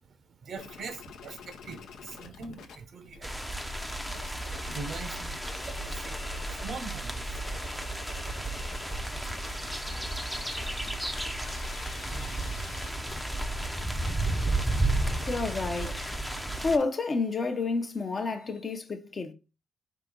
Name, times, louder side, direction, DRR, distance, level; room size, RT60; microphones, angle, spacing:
voice 1, 0.4-3.6 4.6-6.2 6.5-7.4, right 4 dB, 55° right, 0.7 m, -42 dB
sound 1, 0.6-2.8 3.0-6.8 7.2-18.8, left 6 dB, 75° left, 0.7 m, -48 dB
sound 2, 3.2-16.8, right 2 dB, ahead, 0.6 m, -33 dB
voice 2, 15.3-16.1 16.6-19.3, left 4 dB, 35° left, 0.7 m, -30 dB
4.8 x 2.8 x 3.8 m
cardioid pair, 90°, 0 cm